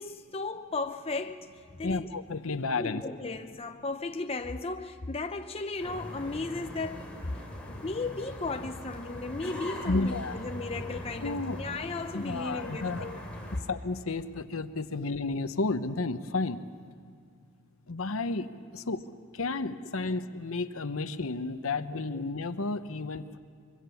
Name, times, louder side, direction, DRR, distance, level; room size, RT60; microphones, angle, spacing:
voice 1, 0.0-2.1 2.8-7.1 7.8-13.2 22.1-22.2, left 3 dB, 25° left, 0.6 m, -35 dB
voice 2, 1.8-3.0 9.9-10.4 11.2-11.6 12.1-13.1 13.7-16.6 17.9-19.0 19.3-23.4, left 3 dB, 75° left, 0.9 m, -32 dB
sound 1, 5.8-13.6, equal, 5° left, 3.2 m, -41 dB
24.5 x 23.5 x 7.1 m
head